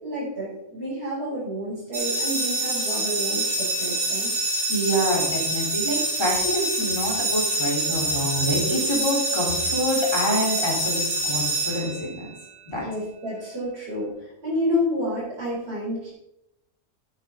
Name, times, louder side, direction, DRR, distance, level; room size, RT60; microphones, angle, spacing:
voice 1, 0.0-4.3 12.7-16.1, equal, 40° right, -12 dB, 5.2 m, -29 dB
sound 1, 1.9-12.3, right 1 dB, 70° right, 4.3 m, -26 dB
voice 2, 4.7-12.3 12.7-12.8, equal, 15° left, -4 dB, 3.6 m, -26 dB
11.0 x 9.8 x 3.8 m, 0.85 s
omnidirectional pair, 1.6 m